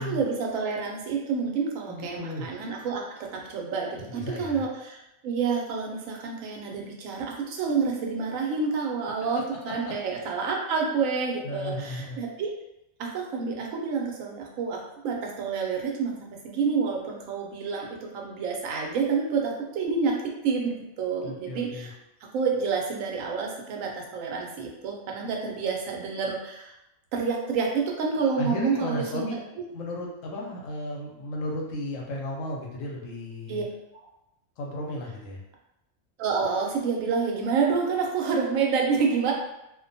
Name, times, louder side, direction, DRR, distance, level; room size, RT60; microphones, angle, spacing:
voice 1, 0.0-5.0 5.2-12.5 13.0-21.9 22.3-26.7 27.1-29.4 33.5-33.6 33.9-34.1 36.2-39.3, right 5 dB, 85° right, 0 dB, 1.0 m, -28 dB
voice 2, 1.9-2.5 4.1-4.6 10.1-10.3 11.4-12.2 21.2-21.9 28.4-29.4 29.6-33.7 34.6-35.4, left 1 dB, 80° left, -1 dB, 1.0 m, -34 dB
2.5 x 2.1 x 2.6 m, 0.87 s
omnidirectional pair, 1.4 m